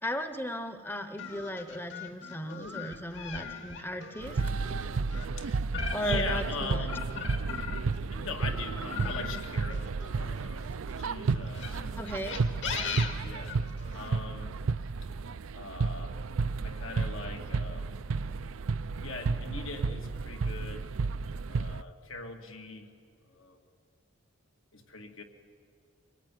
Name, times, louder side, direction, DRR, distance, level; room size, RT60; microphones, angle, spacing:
voice 1, 0.0-4.4 5.9-6.9 12.0-12.4, equal, 10° left, 9 dB, 0.8 m, -36 dB
sound 1, 1.2-8.0 8.4-10.8 11.5-14.1, left 5 dB, 65° left, 2.3 m, -39 dB
sound 2, 4.2-21.8, right 4 dB, 90° right, 0.5 m, -32 dB
voice 2, 5.9-7.1 8.0-9.8 10.1-10.6 11.0-12.0 12.7-13.5 13.9-14.5 15.5-16.2 16.6-18.0 19.0-20.8 21.5-22.9 23.2-23.6 24.7-25.2, left 3 dB, 80° left, 3 dB, 2.5 m, -40 dB
23.5 x 18.0 x 9.4 m, 2.3 s
head